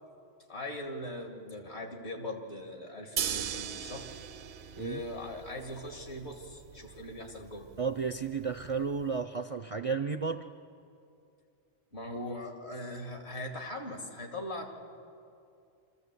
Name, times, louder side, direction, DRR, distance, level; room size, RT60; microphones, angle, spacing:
voice 1, 0.5-4.1 4.7-7.7 11.9-14.7, left 1 dB, 70° left, 2 dB, 2.6 m, -40 dB
sound 1, 3.2-9.2, right 9 dB, 70° right, 0.9 m, -40 dB
voice 2, 7.8-10.5, right 5 dB, 45° right, 8 dB, 0.5 m, -33 dB
25.5 x 14.5 x 8.2 m, 2.5 s
omnidirectional pair, 1.2 m